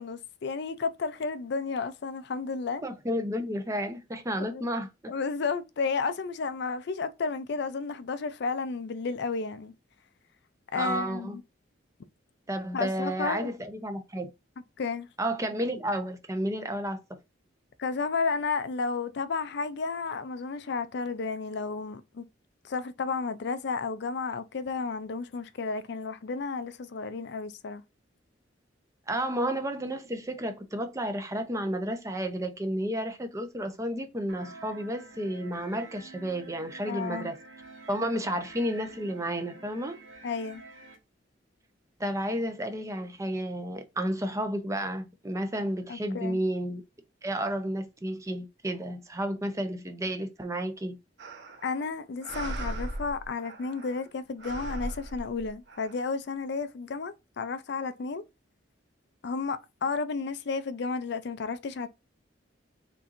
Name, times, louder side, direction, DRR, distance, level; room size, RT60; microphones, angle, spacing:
voice 1, 0.0-2.8 4.5-4.6 5.1-9.7 10.7-11.4 12.7-13.5 14.8-15.1 17.8-22.2 22.6-27.8 36.9-37.3 40.2-40.6 45.9-46.4 51.6-58.2 59.2-61.9, left 4 dB, 60° left, 0.4 m, -32 dB
voice 2, 2.8-4.9 10.7-11.4 12.5-14.3 15.2-17.0 29.1-37.3 37.9-40.0 42.0-46.8 47.2-51.0, right 1 dB, 15° right, 0.6 m, -31 dB
sound 1, 34.3-41.0, right 2 dB, 85° right, 1.4 m, -48 dB
sound 2, 51.2-51.8 52.2-54.1 54.4-55.9, right 1 dB, 60° right, 1.0 m, -38 dB
4.2 x 3.7 x 2.5 m
head